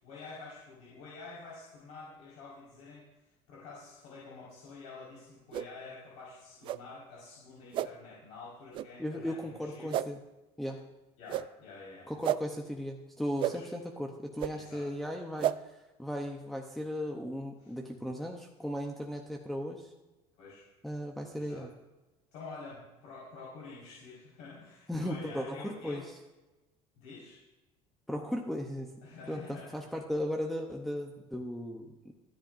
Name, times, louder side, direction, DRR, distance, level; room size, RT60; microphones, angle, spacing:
voice 1, 0.0-3.2 3.5-10.0 11.2-12.1 13.4-13.7 14.5-14.9 17.6-17.7 20.3-20.7 21.3-21.6 22.3-26.1 27.0-27.4 29.0-29.7, left 3 dB, 65° left, -6 dB, 4.7 m, -48 dB
sound 1, 5.5-5.7 6.6-6.8 7.7-7.9 8.7-8.9 9.9-10.1 11.3-11.5 12.2-12.4 13.4-13.5 14.4-14.5 15.4-15.5, right 12 dB, 40° right, 0.4 m, -30 dB
voice 2, 9.0-10.2 10.6-10.8 12.1-19.9 20.8-21.7 24.9-26.1 28.1-28.9 29.3-32.0, equal, ahead, 0 dB, 0.8 m, -36 dB
27.0 x 10.5 x 2.6 m, 1.1 s
cardioid pair, 170°, 13 cm